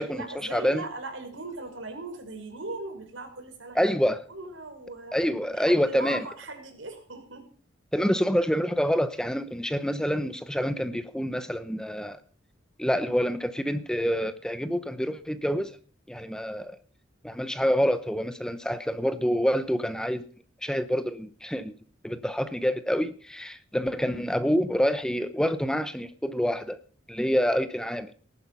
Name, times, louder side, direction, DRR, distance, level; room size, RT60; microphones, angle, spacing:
voice 1, 0.0-3.9 4.3-5.2 5.5-7.5, right 2 dB, 80° right, 4 dB, 5.8 m, -39 dB
voice 2, 0.5-0.8 3.7-4.2 5.1-6.2 7.9-12.2 12.8-15.8 16.1-16.8 17.2-20.2 20.6-21.7 22.0-26.8 27.1-28.1, equal, 5° left, 12 dB, 0.9 m, -27 dB
19.0 x 12.0 x 5.6 m, 0.41 s
head